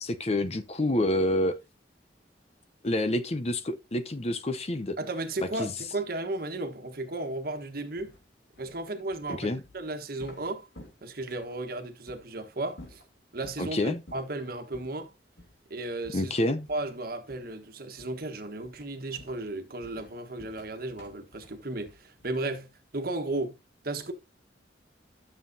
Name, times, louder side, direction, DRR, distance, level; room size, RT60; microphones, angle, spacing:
voice 1, 0.0-1.5 2.8-5.0 5.6-5.7 9.3-9.6 13.6-14.0 16.1-16.7, left 1 dB, 35° left, 0.7 m, -28 dB
voice 2, 5.0-8.1 8.6-10.7 11.0-13.0 13.3-15.1 15.7-16.3 16.7-22.7 22.9-23.5 23.8-24.1, right 2 dB, 55° right, 1.4 m, -34 dB
sound 1, 8.0-11.6 12.1-12.3 12.7-13.7 14.1-14.4 14.7-15.0 15.4-15.6 16.0-17.0 17.3-17.6 18.0-18.3 18.6-22.6, left 1 dB, 80° left, 3.0 m, -53 dB
12.0 x 7.3 x 2.8 m
head